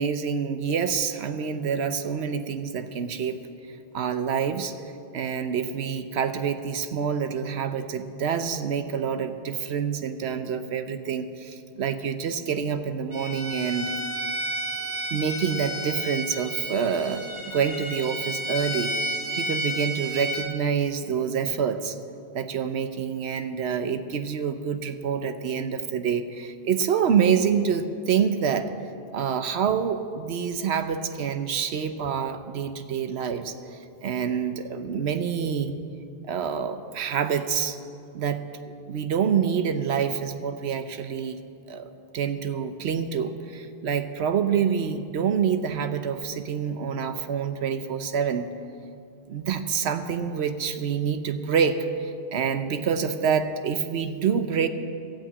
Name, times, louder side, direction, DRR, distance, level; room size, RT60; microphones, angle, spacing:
voice 1, 0.0-3.4 3.9-4.7 5.1-13.9 15.1-22.0 22.3-28.7 29.1-33.5 34.0-35.8 36.2-37.8 38.1-38.4 38.9-41.4 41.7-48.5 49.3-54.7, right 7 dB, 80° right, 9 dB, 1.0 m, -27 dB
Bowed string instrument, 13.1-20.5, right 1 dB, 10° right, 2.4 m, -31 dB
13.0 x 8.6 x 8.3 m, 2.4 s
omnidirectional pair, 1.1 m